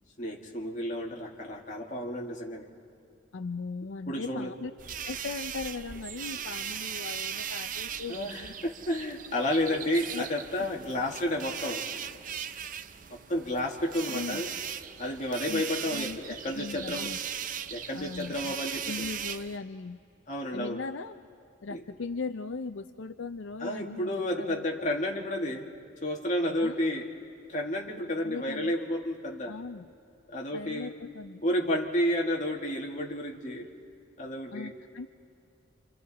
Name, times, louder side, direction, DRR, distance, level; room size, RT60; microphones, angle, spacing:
voice 1, 0.2-2.7 4.1-4.5 8.1-11.9 13.1-14.5 15.0-17.1 17.7-19.1 20.3-20.8 21.7-21.8 23.6-25.7 26.0-27.1 27.5-29.5 30.3-30.9 31.4-33.7 34.2-34.8, left 1 dB, 40° left, -1 dB, 2.0 m, -31 dB
voice 2, 3.3-4.7 5.0-8.5 9.5-9.9 10.1-10.2 14.1-14.4 15.5-16.2 16.5-17.2 17.9-18.6 18.9-20.0 20.5-21.2 21.6-24.9 26.6-27.0 28.2-28.7 29.5-29.9 30.5-31.4 34.5-35.1, left 4 dB, 80° left, 9 dB, 0.5 m, -39 dB
sound 1, 4.8-19.6, right 8 dB, 45° right, 0.5 m, -38 dB
28.5 x 26.5 x 4.2 m, 2.4 s
head